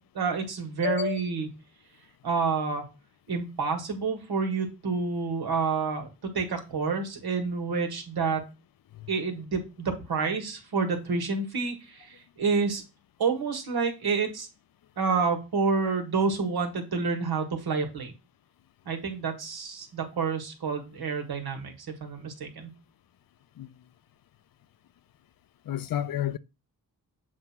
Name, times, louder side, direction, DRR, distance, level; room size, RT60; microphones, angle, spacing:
voice 1, 0.1-1.5 2.2-2.8 3.3-8.4 9.1-12.8 13.2-14.5 15.0-18.1 18.8-22.7, right 4 dB, 85° right, 1.6 m, -29 dB
voice 2, 0.8-1.2 8.9-9.1 23.6-23.7 25.6-26.4, left 12 dB, 65° left, 0.5 m, -30 dB
7.4 x 2.7 x 5.8 m
wide cardioid pair, 95°, 37 cm